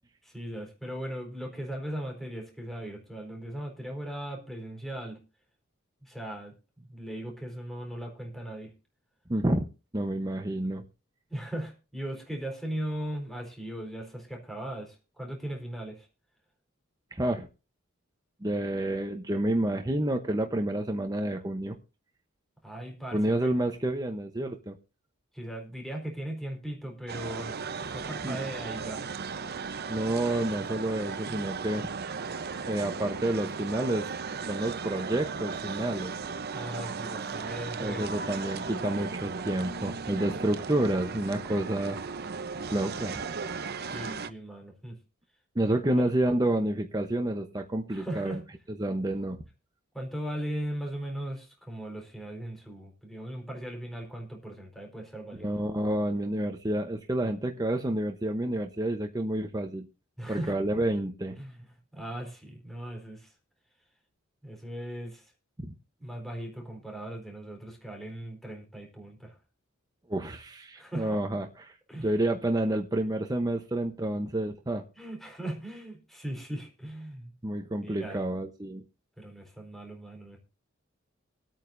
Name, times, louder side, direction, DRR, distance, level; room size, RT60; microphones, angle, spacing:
voice 1, 0.2-5.2 6.0-8.7 11.3-16.1 22.6-23.5 25.3-29.0 36.5-38.1 43.8-45.0 45.7-46.1 47.9-48.4 49.9-55.6 60.2-60.5 61.4-63.3 64.4-65.3 66.0-69.3 70.8-71.2 71.9-72.1 75.0-77.3 77.8-78.2 79.2-80.4, right 1 dB, ahead, 1 dB, 4.2 m, -38 dB
voice 2, 9.3-9.7 9.9-10.8 17.1-17.5 18.4-21.8 23.1-24.8 28.2-28.4 29.9-31.9 32.7-34.2 34.5-36.1 37.8-42.0 42.7-43.2 45.5-48.4 48.8-49.4 55.3-59.9 60.3-61.4 65.6-65.7 70.1-74.8 77.4-78.8, right 1 dB, 20° right, 4 dB, 0.9 m, -29 dB
sound 1, 27.1-44.3, right 5 dB, 50° right, 0.8 m, -36 dB
25.0 x 9.0 x 2.6 m, 0.31 s
head